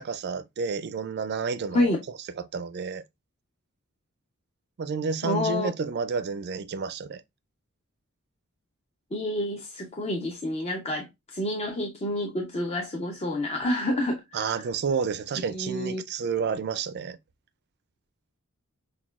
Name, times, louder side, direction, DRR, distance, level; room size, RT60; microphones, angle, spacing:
voice 1, 0.0-1.9 2.4-3.0 4.8-7.2 14.3-17.2, right 5 dB, 50° right, 0.4 m, -30 dB
voice 2, 5.2-5.7 9.1-14.6 15.4-16.0, left 1 dB, 30° left, 0.6 m, -28 dB
5.9 x 2.3 x 2.3 m
head